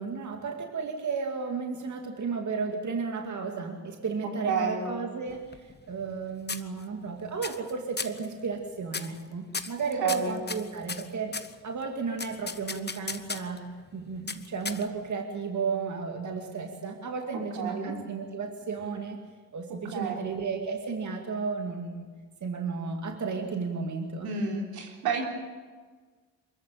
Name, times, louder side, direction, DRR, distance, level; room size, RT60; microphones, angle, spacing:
voice 1, 0.0-11.3 11.6-13.6 13.9-19.2 19.5-22.1 22.4-24.3, right 5 dB, 50° right, 3 dB, 2.4 m, -33 dB
voice 2, 4.4-4.9 10.0-10.4 17.6-17.9 19.9-20.3 24.2-25.2, right 5 dB, 85° right, 0 dB, 3.8 m, -30 dB
sound 1, 5.3-6.2 6.5-7.1 7.4-7.7 8.0-8.3 8.9-9.2 9.5-11.5 12.2-13.6 14.3-15.1, left 4 dB, 30° left, 1.2 m, -36 dB
23.5 x 14.0 x 9.0 m, 1.5 s
supercardioid pair, 50°, 36 cm